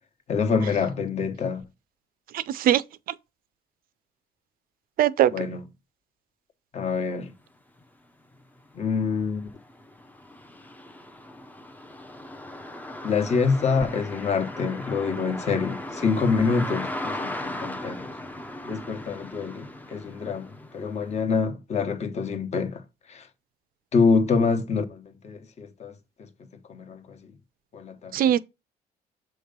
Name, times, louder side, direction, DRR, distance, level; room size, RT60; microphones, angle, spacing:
voice 1, 0.3-1.6 5.3-5.6 6.7-7.3 8.7-9.5 13.0-18.1 18.7-22.8 23.1-23.3 23.9-25.9 26.7-27.2 27.7-28.2, left 5 dB, 40° left, 1.1 m, -26 dB
voice 2, 2.3-2.8 5.0-5.3 28.1-28.4, right 11 dB, 60° right, 0.5 m, -20 dB
sound 1, 7.8-7.9 8.3-21.2, left 1 dB, 10° left, 0.6 m, -38 dB
7.7 x 3.1 x 5.1 m
cardioid pair, 110°, 17 cm